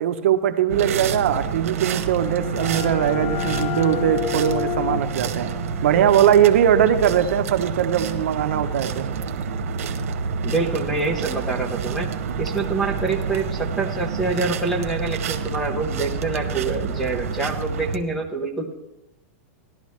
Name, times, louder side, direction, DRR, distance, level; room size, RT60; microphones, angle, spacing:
voice 1, 0.0-5.5 5.8-9.1, right 9 dB, 60° right, 8 dB, 0.7 m, -20 dB
sound 1, 0.7-18.0, right 6 dB, 80° right, 1.1 m, -28 dB
sound 2, 1.9-7.4, left 13 dB, 40° left, 0.6 m, -32 dB
voice 2, 10.4-12.1 12.4-18.7, right 3 dB, 5° left, 5 dB, 0.7 m, -26 dB
15.5 x 11.5 x 3.1 m, 0.95 s
supercardioid pair, 175°, 8 cm